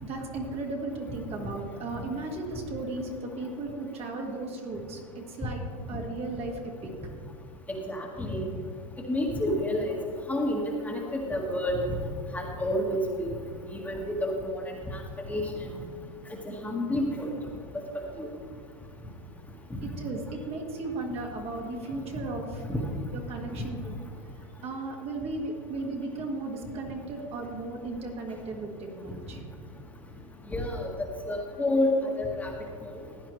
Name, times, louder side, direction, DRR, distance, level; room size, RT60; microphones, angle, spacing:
voice 1, 0.0-5.6 5.9-6.9 19.8-22.6 23.1-24.0 24.6-29.4, right 2 dB, 35° right, 1 dB, 1.9 m, -36 dB
voice 2, 7.7-8.5 9.1-10.0 10.3-11.9 12.3-13.3 13.7-15.0 15.3-15.5 16.4-17.3 18.2-18.3 19.8-19.9 22.7-22.8 23.5-23.6 30.5-30.9 31.3-32.5 32.8-32.9, left 1 dB, 10° left, -1 dB, 1.6 m, -29 dB
15.5 x 9.6 x 3.2 m, 2.2 s
hypercardioid pair, 115°, 17 cm